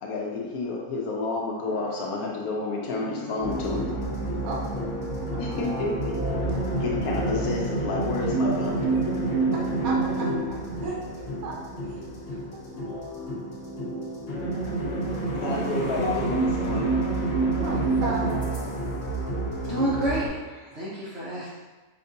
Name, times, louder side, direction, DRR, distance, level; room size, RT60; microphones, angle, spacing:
voice 1, 0.0-4.0 5.4-6.2 6.8-9.3 15.4-17.1, left 3 dB, 75° left, -2 dB, 1.0 m, -30 dB
sound 1, 1.7-16.2, left 2 dB, 25° left, 0.5 m, -40 dB
sound 2, 3.4-20.3, right 2 dB, 45° left, 1.2 m, -28 dB
voice 2, 4.4-4.8 8.4-8.5 9.8-10.3 10.8-11.0 11.3-11.5 11.9-12.0 15.1-15.8 17.6-18.7, right 2 dB, 75° right, -3 dB, 1.2 m, -34 dB
voice 3, 19.6-21.5, right 1 dB, 55° right, -8 dB, 0.9 m, -29 dB
5.1 x 2.3 x 2.6 m, 1.3 s
omnidirectional pair, 1.6 m